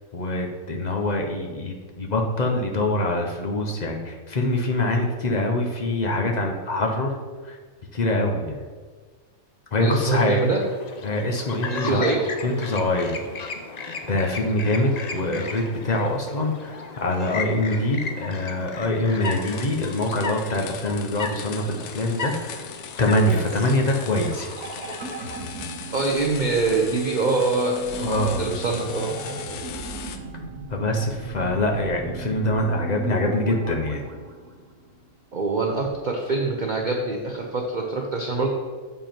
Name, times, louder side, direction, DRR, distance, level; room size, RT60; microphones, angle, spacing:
voice 1, 0.1-7.2 7.4-7.6 7.9-8.6 9.7-10.4 11.0-12.1 12.4-13.2 14.1-22.7 23.0-24.5 28.0-28.5 30.7-34.0, left 1 dB, 40° left, 1 dB, 0.7 m, -24 dB
voice 2, 9.8-10.6 11.7-12.2 25.9-29.1 35.3-38.5, right 3 dB, 45° right, 0 dB, 0.6 m, -24 dB
Chirp tweet, 10.3-25.5, left 4 dB, 70° left, 0.4 m, -36 dB
sound 1, 19.2-30.2, left 7 dB, 85° left, 1.1 m, -39 dB
sound 2, 23.3-35.3 35.5-35.6, right 2 dB, 75° right, 1.5 m, -37 dB
7.2 x 5.5 x 4.4 m, 1.5 s
omnidirectional pair, 1.6 m